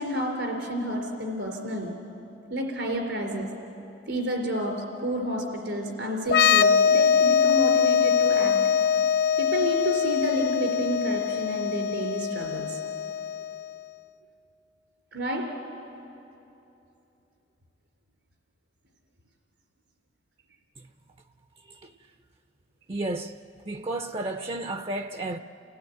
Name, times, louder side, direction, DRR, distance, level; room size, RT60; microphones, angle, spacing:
voice 1, 0.0-2.0 2.5-3.5 4.1-8.6 9.4-12.7 15.1-15.5, equal, 85° right, 3.7 m, -30 dB
sound 1, 6.3-13.8, left 7 dB, 65° left, 0.5 m, -23 dB
voice 2, 22.9-23.4 23.7-25.4, right 2 dB, 35° right, 0.5 m, -32 dB
29.5 x 16.5 x 9.1 m
head